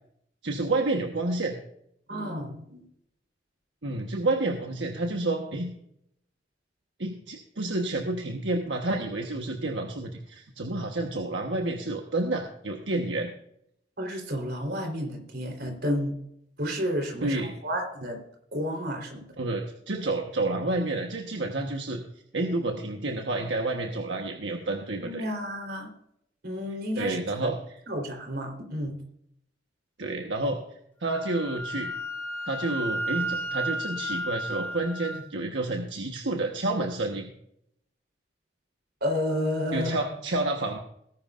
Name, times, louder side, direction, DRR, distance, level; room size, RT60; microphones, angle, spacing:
voice 1, 0.4-1.6 3.8-5.7 7.0-13.3 17.2-17.5 19.4-22.0 22.3-25.3 26.7-27.8 30.0-30.6 31.0-31.9 32.5-37.3 39.7-40.8, right 2 dB, 85° right, 2 dB, 1.3 m, -29 dB
voice 2, 2.1-2.8 14.0-16.1 16.6-18.2 18.5-19.2 25.0-25.9 26.4-27.2 27.4-27.5 27.9-29.0 39.0-39.9, equal, 60° right, 3 dB, 4.0 m, -31 dB
Wind instrument woodwind instrument, 31.0-35.2, right 1 dB, 10° left, 4.2 m, -33 dB
19.5 x 11.0 x 2.6 m, 0.72 s
head